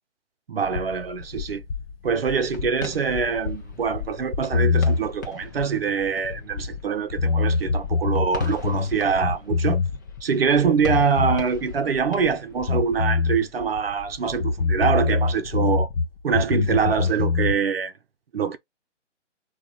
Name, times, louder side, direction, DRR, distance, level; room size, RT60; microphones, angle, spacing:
voice 1, 0.5-1.6 2.0-9.8 10.2-15.9 16.2-17.9 18.3-18.6, right 6 dB, 50° right, 0.8 m, -24 dB
sound 1, 0.6-6.8 7.1-10.2 10.5-12.3 12.6-16.1 16.3-17.6, left 4 dB, 50° left, 1.0 m, -24 dB
sound 2, 2.4-15.3, left 2 dB, 15° left, 0.5 m, -42 dB
6.3 x 2.4 x 2.9 m
figure-of-eight pair, 150°, 37 cm